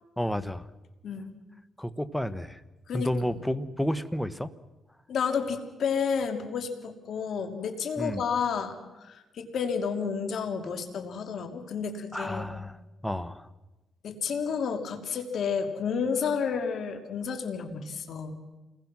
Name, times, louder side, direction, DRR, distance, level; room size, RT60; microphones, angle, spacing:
voice 1, 0.2-0.7 1.8-2.6 2.9-4.5 8.0-8.2 12.1-13.5, equal, 5° left, 13 dB, 1.2 m, -31 dB
voice 2, 2.9-3.4 5.1-8.7 9.0-12.5 14.0-18.4, left 6 dB, 65° left, 6 dB, 2.9 m, -31 dB
28.5 x 21.0 x 6.1 m, 1.1 s
cardioid pair, 90°, 0 cm